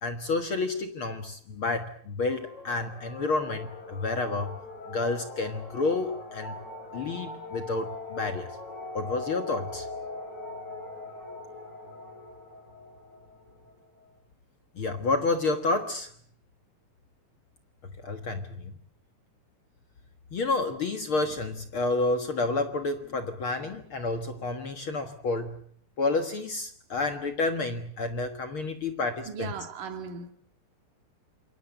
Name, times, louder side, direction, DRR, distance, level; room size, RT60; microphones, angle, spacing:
voice 1, 0.0-4.6 4.9-6.6 6.9-8.5 8.9-9.9 14.8-16.1 18.0-18.7 20.3-25.6 26.0-29.5, left 3 dB, 50° left, 1.7 m, -30 dB
sound 1, 2.3-14.1, left 2 dB, 30° left, 6.7 m, -41 dB
voice 2, 29.3-30.3, right 6 dB, 65° right, 3.6 m, -37 dB
27.5 x 22.5 x 8.1 m
omnidirectional pair, 4.1 m